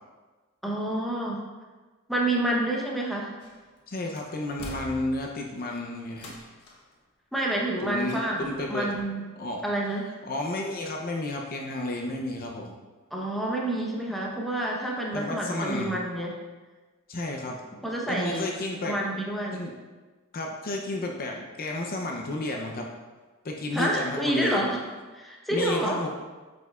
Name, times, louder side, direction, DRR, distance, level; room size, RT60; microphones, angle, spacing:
voice 1, 0.6-1.4 2.1-3.3 7.3-9.2 9.6-10.1 13.1-16.4 17.8-18.4 18.8-19.6 23.7-24.8 25.1-26.0, right 1 dB, ahead, -3 dB, 0.8 m, -28 dB
sound 1, 3.4-3.8 4.1-5.5 6.1-6.9 8.0-8.6 9.0-9.1, left 2 dB, 80° left, 1.1 m, -44 dB
voice 2, 3.9-6.3 7.8-8.9 9.4-9.6 10.2-12.7 15.1-16.0 17.1-17.6 18.1-19.0 19.5-19.7 20.3-22.9 23.4-24.6 25.5-26.1, left 2 dB, 40° left, 1 dB, 0.6 m, -32 dB
7.8 x 5.1 x 2.4 m, 1.3 s
head